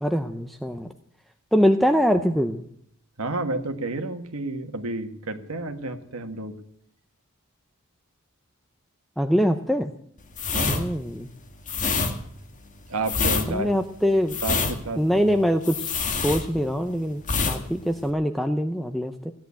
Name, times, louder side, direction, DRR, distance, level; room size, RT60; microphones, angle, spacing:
voice 1, 0.0-0.9 1.5-2.6 9.2-9.9 10.7-11.3 13.5-14.4 15.0-19.3, equal, ahead, 6 dB, 0.7 m, -23 dB
voice 2, 3.2-6.5 10.5-10.9 12.9-13.7 14.4-15.4, right 2 dB, 75° right, 7 dB, 1.6 m, -31 dB
sound 1, 10.3-16.9 17.2-17.6 17.9-18.1, left 4 dB, 35° left, 1.9 m, -26 dB
16.0 x 10.5 x 8.3 m, 0.68 s
head